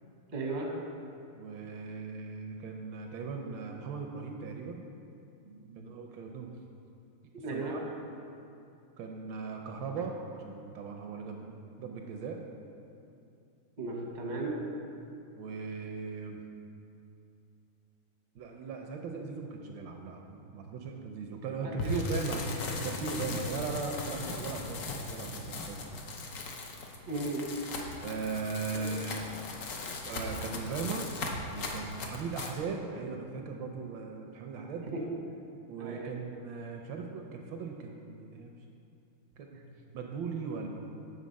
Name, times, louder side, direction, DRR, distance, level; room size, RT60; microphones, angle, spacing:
voice 1, 0.3-0.7 5.4-5.8 7.3-7.8 13.8-14.6 21.8-22.0 27.1-27.5 28.7-28.9 29.3-29.4 34.9-35.0 35.8-36.1 39.5-39.6, right 2 dB, 45° right, -2 dB, 0.6 m, -36 dB
voice 2, 1.3-4.8 5.8-6.6 7.5-7.8 9.0-12.4 15.4-16.4 18.3-22.4 22.8-25.8 28.0-29.3 30.0-31.1 31.5-34.9 35.7-38.6 39.4-39.5 39.9-40.7, right 5 dB, 75° right, 2 dB, 1.1 m, -38 dB
sound 1, 21.8-32.6, left 2 dB, 90° left, 0.7 m, -38 dB
8.4 x 3.9 x 5.1 m, 2.6 s
omnidirectional pair, 2.3 m